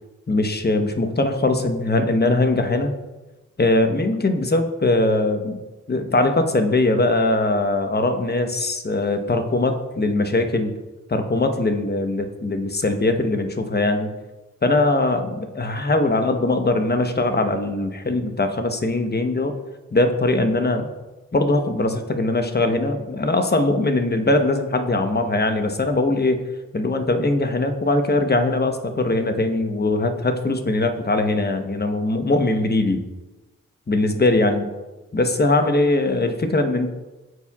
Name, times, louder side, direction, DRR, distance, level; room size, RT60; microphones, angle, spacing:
voice 1, 0.3-3.0 3.6-5.6 5.9-10.7 11.1-14.1 14.6-19.6 19.9-20.9 21.3-26.4 26.7-33.0 33.9-34.7 35.1-36.9, left 2 dB, 30° left, 6 dB, 1.0 m, -21 dB
12.5 x 4.7 x 2.4 m, 1.1 s
cardioid pair, 40°, 32 cm